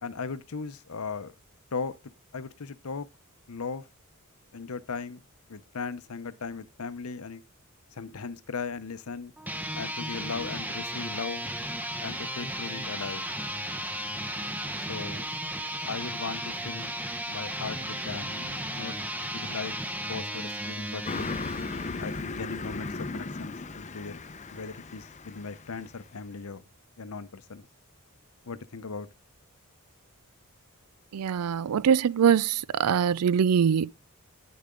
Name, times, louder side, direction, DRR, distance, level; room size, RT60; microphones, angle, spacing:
voice 1, 0.0-1.3 1.7-1.9 2.3-3.1 3.5-3.9 4.5-5.2 5.5-7.4 7.9-9.3 9.7-11.5 12.0-13.3 14.8-15.2 15.9-17.0 17.3-19.7 20.1-21.3 22.0-24.2 24.5-26.6 27.0-27.7 28.5-29.1, left 4 dB, 70° left, 0.7 m, -38 dB
sound 1, 9.4-22.1, right 1 dB, 10° right, 0.7 m, -35 dB
Car passing by, 21.1-26.0, left 3 dB, 30° left, 0.6 m, -36 dB
voice 2, 31.1-33.9, right 7 dB, 90° right, 0.4 m, -23 dB
10.5 x 6.8 x 3.8 m
head